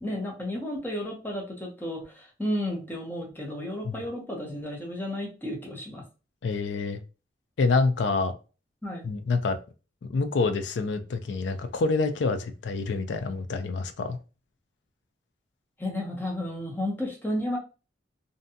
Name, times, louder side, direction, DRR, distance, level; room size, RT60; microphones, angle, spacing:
voice 1, 0.0-6.0 8.8-9.0 15.8-17.6, left 1 dB, 10° left, 0.6 m, -32 dB
voice 2, 6.4-7.0 7.6-8.3 9.0-9.6 10.0-14.2, left 3 dB, 80° left, 0.4 m, -27 dB
2.6 x 2.2 x 2.6 m
head